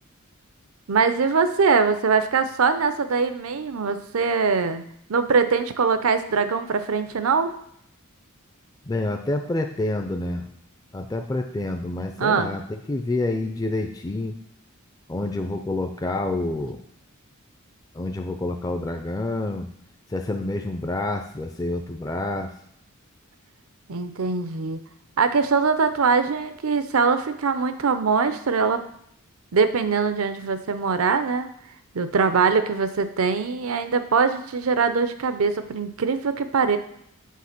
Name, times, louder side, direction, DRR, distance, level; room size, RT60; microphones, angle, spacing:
voice 1, 0.9-4.8 5.1-7.5 12.2-12.6 23.9-24.8 25.2-28.8 29.5-31.5 31.9-36.8, right 5 dB, 75° right, 10 dB, 0.6 m, -22 dB
voice 2, 8.9-10.5 10.9-12.6 12.9-14.3 15.1-16.8 17.9-19.7 20.1-22.5, left 2 dB, 15° left, 4 dB, 0.4 m, -28 dB
7.5 x 3.3 x 5.8 m, 0.71 s
head